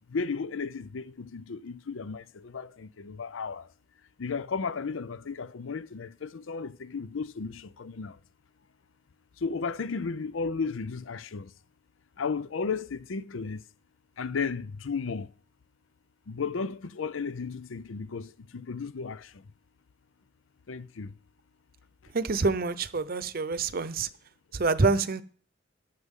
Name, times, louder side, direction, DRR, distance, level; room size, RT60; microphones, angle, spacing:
voice 1, 0.1-3.7 4.2-8.2 9.4-11.5 12.2-13.6 14.2-15.3 16.3-19.4 20.7-21.1, left 5 dB, 90° left, 0.6 m, -34 dB
voice 2, 22.1-24.1 24.5-25.2, right 3 dB, 50° right, 0.7 m, -26 dB
14.5 x 11.0 x 3.7 m
head